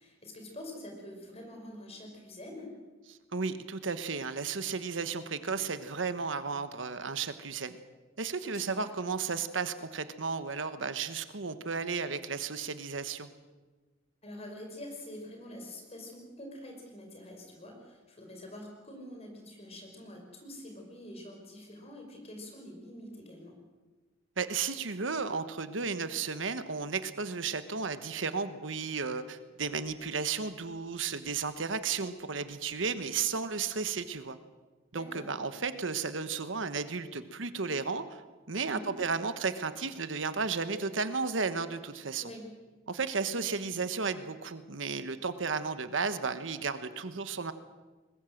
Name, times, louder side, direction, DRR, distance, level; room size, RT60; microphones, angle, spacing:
voice 1, 0.0-2.7 8.4-8.9 14.2-23.6 34.9-35.3 38.6-38.9 42.2-42.5, left 1 dB, 35° left, 2 dB, 5.4 m, -46 dB
voice 2, 3.3-7.8 8.2-13.3 24.4-34.4 34.9-38.2 38.5-42.3 42.9-47.5, right 5 dB, 80° right, 11 dB, 1.3 m, -34 dB
21.5 x 20.5 x 7.8 m, 1.3 s
head